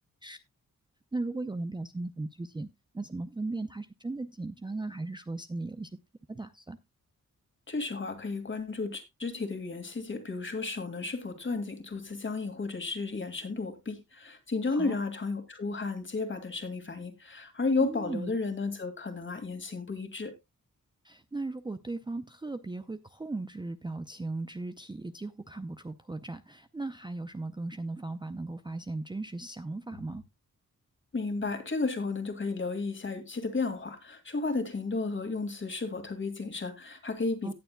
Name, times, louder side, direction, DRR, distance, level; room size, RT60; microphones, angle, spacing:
voice 1, 1.1-2.7 2.9-5.9 6.3-6.8 14.7-15.0 17.8-18.3 21.0-30.2 37.4-37.5, right 2 dB, 15° right, 0.5 m, -37 dB
voice 2, 7.7-20.3 31.1-37.5, left 3 dB, 35° left, 2.2 m, -33 dB
18.0 x 7.0 x 2.2 m
wide cardioid pair, 100°, 32 cm